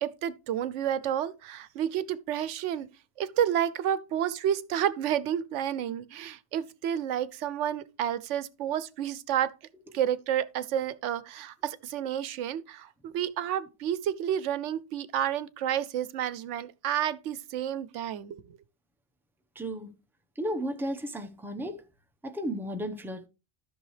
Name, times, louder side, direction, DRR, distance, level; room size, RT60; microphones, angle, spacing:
voice 1, 0.0-2.9 3.2-9.5 9.9-18.6, right 10 dB, 85° right, 0.9 m, -30 dB
voice 2, 19.5-19.9 20.4-21.8 22.2-23.3, equal, ahead, 0.8 m, -34 dB
13.5 x 6.1 x 3.2 m
omnidirectional pair, 1.2 m